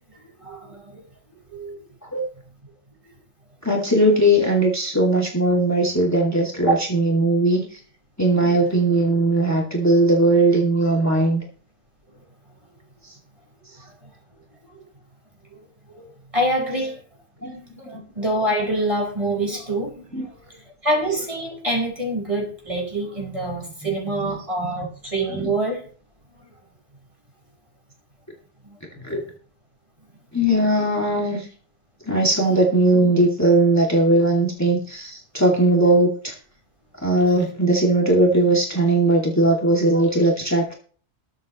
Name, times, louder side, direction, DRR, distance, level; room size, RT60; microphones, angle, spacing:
voice 1, 0.1-1.0 1.5-1.8 8.3-8.6 14.7-14.8 15.5-15.6 15.9-17.0 17.5-20.3 20.8-25.8 28.6-28.8, right 1 dB, 25° right, 0 dB, 4.9 m, -26 dB
voice 2, 3.6-7.8 8.2-11.4 13.0-13.1 17.4-18.0 20.1-20.3 23.8-24.3 25.3-25.5 29.0-29.2 30.3-31.5 32.0-36.3 37.0-40.7, right 1 dB, 15° left, -2 dB, 2.5 m, -19 dB
21.5 x 7.9 x 3.1 m, 0.43 s
omnidirectional pair, 1.2 m